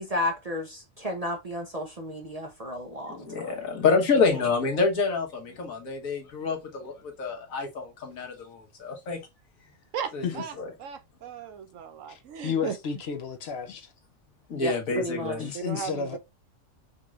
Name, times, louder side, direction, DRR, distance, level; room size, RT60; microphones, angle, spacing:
voice 1, 0.0-3.4 14.6-15.4, left 1 dB, 35° right, 0.7 m, -33 dB
voice 2, 3.1-9.2 10.1-10.7 14.5-15.5, left 4 dB, 80° left, 1.7 m, -27 dB
voice 3, 9.9-10.5 10.8-12.8 15.5-16.2, right 7 dB, 75° right, 1.1 m, -36 dB
voice 4, 12.1-13.9 15.4-16.2, left 7 dB, 60° left, 0.8 m, -32 dB
5.3 x 2.5 x 3.0 m
omnidirectional pair, 1.4 m